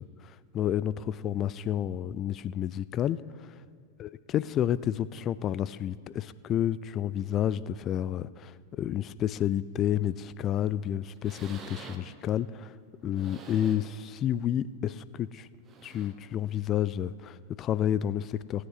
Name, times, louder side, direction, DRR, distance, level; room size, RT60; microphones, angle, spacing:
voice 1, 0.0-3.5 4.0-12.8 13.0-15.5 15.8-18.7, left 10 dB, 30° left, 17 dB, 0.3 m, -30 dB
sound 1, 10.0-10.3 10.8-10.9 11.1-12.2 12.9-14.0 14.5-14.6 15.5-16.3 17.3-17.4, right 4 dB, 25° right, 1.0 m, -48 dB
17.0 x 9.5 x 4.1 m, 2.3 s
figure-of-eight pair, 90°, 0 cm